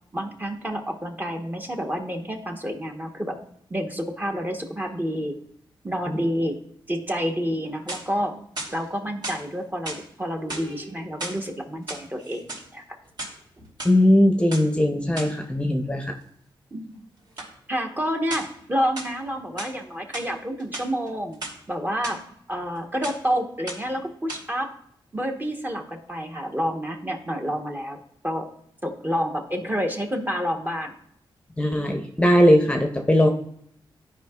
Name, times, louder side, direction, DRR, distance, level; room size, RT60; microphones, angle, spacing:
voice 1, 0.1-3.4 3.7-5.3 5.8-6.6 6.9-8.4 8.7-12.8 16.7-17.0 17.7-21.4 21.7-22.2 22.5-24.7 25.1-28.5 28.8-30.9, equal, 20° right, 2 dB, 1.0 m, -29 dB
sound 1, 7.6-8.2 8.6-9.4 9.8-10.1 10.4-11.4 11.8-12.7 13.0-13.9 14.5-14.7 15.2-15.4 17.4-17.5 18.3-18.6 19.0-19.8 20.1-20.3 20.6-21.6 22.0-22.2 22.5-22.8 23.0-23.3 23.7-24.0 24.3-24.4, right 2 dB, 50° right, 2.6 m, -36 dB
voice 2, 13.8-16.2 31.6-33.3, left 1 dB, 10° left, 3 dB, 0.8 m, -19 dB
13.5 x 4.9 x 2.4 m, 0.70 s
cardioid pair, 90°, 9 cm